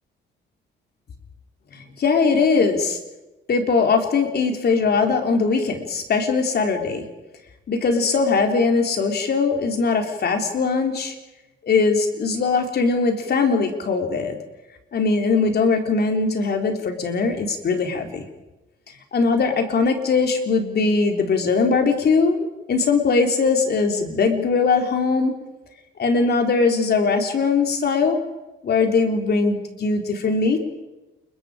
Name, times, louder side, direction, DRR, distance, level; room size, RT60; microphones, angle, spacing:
voice 1, 2.0-3.0 3.5-7.0 7.7-11.1 11.7-14.4 14.9-18.3 19.1-25.3 26.0-28.2 28.6-30.6, left 4 dB, 55° left, 4 dB, 3.8 m, -20 dB
29.5 x 22.0 x 5.1 m, 1.0 s
cardioid pair, 90°, 20 cm